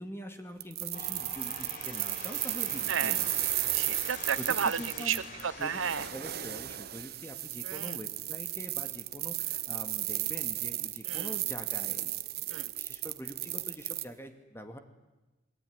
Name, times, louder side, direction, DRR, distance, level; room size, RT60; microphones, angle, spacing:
voice 1, 0.0-3.3 4.4-5.2 5.6-12.2 12.5-14.8, equal, 10° left, 6 dB, 2.4 m, -44 dB
sound 1, 0.6-14.0, right 15 dB, 50° right, 1.0 m, -34 dB
sound 2, 0.9-6.1, left 2 dB, 45° left, 4.8 m, -44 dB
voice 2, 3.7-6.1 7.6-8.0 11.1-11.3 12.5-12.7, right 7 dB, 80° right, 16 dB, 0.9 m, -33 dB
28.0 x 21.0 x 9.7 m, 1.1 s
head